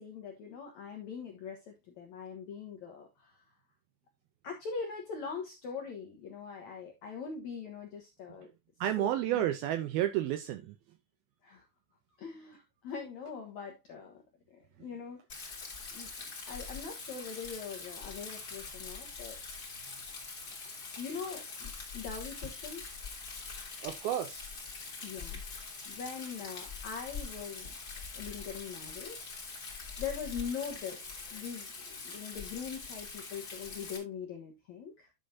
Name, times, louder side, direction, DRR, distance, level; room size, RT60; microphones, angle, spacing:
voice 1, 0.0-3.4 4.4-8.5 9.0-9.5 11.4-11.6 12.2-14.2 14.5-15.2 15.9-19.4 21.0-22.8 25.0-27.7 28.1-29.5 30.0-35.1, left 6 dB, 70° left, 1.7 m, -42 dB
voice 2, 8.8-10.8 23.8-24.6, right 12 dB, 85° right, 2.2 m, -31 dB
Rain, 15.3-34.0, left 4 dB, 30° left, 2.3 m, -44 dB
11.0 x 6.9 x 2.7 m
omnidirectional pair, 5.0 m